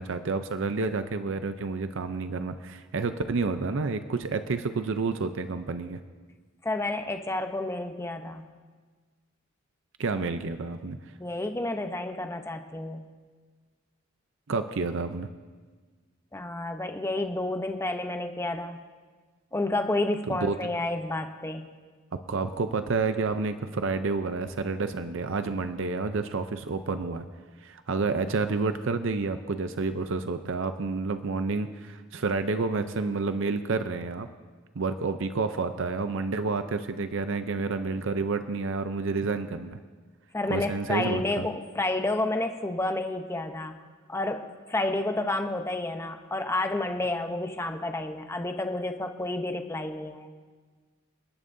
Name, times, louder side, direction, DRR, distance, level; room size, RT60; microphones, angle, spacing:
voice 1, 0.0-6.0 10.0-11.0 14.5-15.3 20.3-20.5 22.3-27.2 27.6-34.3 34.8-39.8 40.5-41.4, right 4 dB, 65° right, 9 dB, 0.6 m, -29 dB
voice 2, 6.6-8.5 11.2-13.1 16.3-18.8 19.5-21.7 40.3-43.7 44.1-50.3, left 2 dB, 15° left, 6 dB, 0.8 m, -30 dB
28.5 x 11.0 x 2.7 m, 1.5 s
head